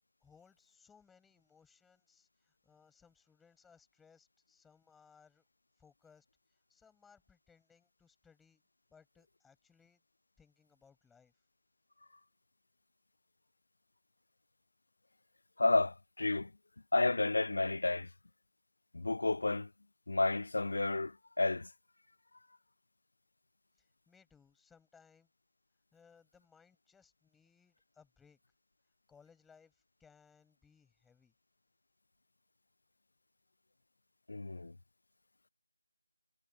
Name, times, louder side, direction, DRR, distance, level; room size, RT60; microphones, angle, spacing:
voice 1, 0.2-5.4 5.8-8.6 8.9-10.0 10.4-11.3 23.8-25.3 25.9-28.4 29.1-31.3, left 6 dB, 5° left, 7.3 m, -65 dB
voice 2, 15.6-16.5 16.9-18.1 18.9-19.7 20.1-21.7 34.3-34.7, left 2 dB, 50° left, 0.3 m, -31 dB
figure-of-eight pair, 165°, 0 cm